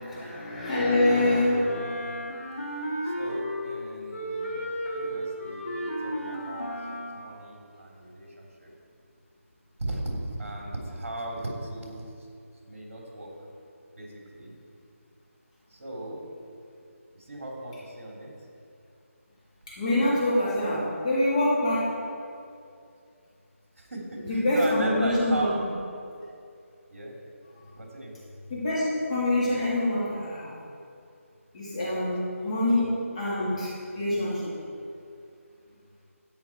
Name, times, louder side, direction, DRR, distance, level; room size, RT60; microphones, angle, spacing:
voice 1, 0.0-1.8 19.8-21.9 24.3-25.4 28.5-30.5 31.5-32.9 33.1-34.5, left 1 dB, 25° left, -8 dB, 3.3 m, -25 dB
Wind instrument woodwind instrument, 1.6-3.8 4.1-7.2, equal, 70° left, 2.9 m, -33 dB
voice 2, 3.0-4.7 4.9-6.7 7.1-8.7 9.8-12.3 12.6-13.3 13.9-14.5 15.7-16.2 17.1-18.3 23.8-25.5 26.9-27.1 27.7-28.1, right 1 dB, 55° right, -2 dB, 3.4 m, -37 dB
13.5 x 9.4 x 4.7 m, 2.5 s
figure-of-eight pair, 170°, 8 cm